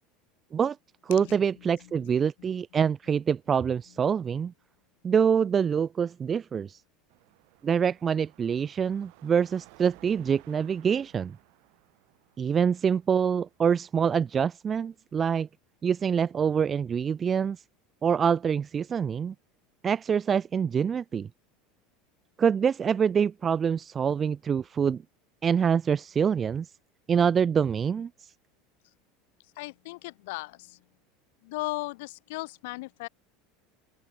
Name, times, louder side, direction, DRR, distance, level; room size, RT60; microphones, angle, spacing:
voice 1, 1.0-4.5 5.0-6.8 7.6-11.4 12.4-15.5 15.8-17.6 18.0-19.3 19.8-21.3 22.4-25.0 25.4-26.7 27.1-28.3, right 7 dB, 25° right, 0.3 m, -25 dB
Car passing by / Traffic noise roadway noise / Engine, 7.1-14.4, right 40 dB or more, 65° right, 4.1 m, -58 dB
voice 2, 29.6-30.8 31.4-33.1, left 23 dB, 75° left, 0.8 m, -36 dB
open air
supercardioid pair, 140°, 0 cm